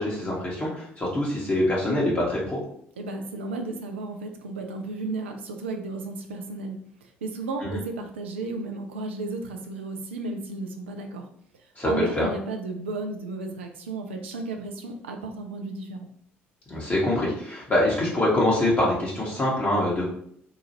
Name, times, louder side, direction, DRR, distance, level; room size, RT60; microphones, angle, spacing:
voice 1, 0.0-2.6 7.6-7.7 11.8-12.3 16.7-20.0, left 1 dB, 25° left, -6 dB, 1.1 m, -24 dB
voice 2, 3.0-6.8 7.2-11.3 11.8-16.1, right 3 dB, 80° right, 4 dB, 0.4 m, -33 dB
2.8 x 2.4 x 2.8 m, 0.65 s
figure-of-eight pair, 50°, 6 cm